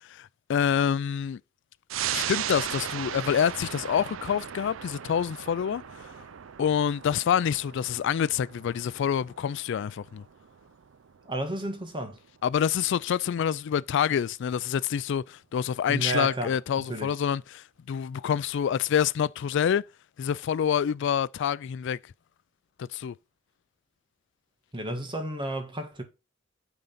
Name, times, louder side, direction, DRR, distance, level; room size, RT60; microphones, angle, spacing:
voice 1, 0.0-1.4 2.1-6.0 6.6-10.2 12.4-19.8 20.2-22.0 22.8-23.1, left 8 dB, 65° left, 0.3 m, -27 dB
sound 1, 1.9-12.9 13.3-13.4, right 10 dB, 70° right, 0.5 m, -37 dB
voice 2, 11.3-12.2 15.9-16.5 16.9-17.1 24.7-26.0, right 1 dB, 25° right, 1.8 m, -32 dB
9.0 x 3.9 x 5.5 m
head